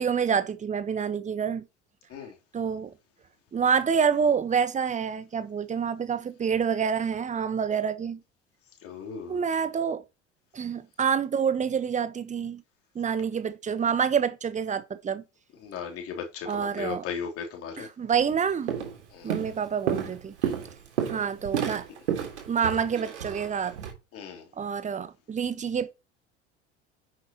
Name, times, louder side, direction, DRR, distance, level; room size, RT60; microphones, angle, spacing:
voice 1, 0.0-1.6 2.5-2.9 3.5-8.2 9.3-10.0 10.5-12.6 12.9-15.2 16.4-17.0 17.8-18.7 19.2-20.3 21.1-21.9 22.5-23.8 24.6-25.9, right 7 dB, 20° right, 1.1 m, -27 dB
voice 2, 8.8-9.4 15.6-17.9 19.1-19.3 24.1-24.5, left 6 dB, 40° left, 3.5 m, -36 dB
Walk footsteps, 18.1-18.3 18.7-19.0 19.3-23.9, right 8 dB, 70° right, 3.5 m, -31 dB
10.0 x 8.0 x 3.0 m
figure-of-eight pair, 70°, 35 cm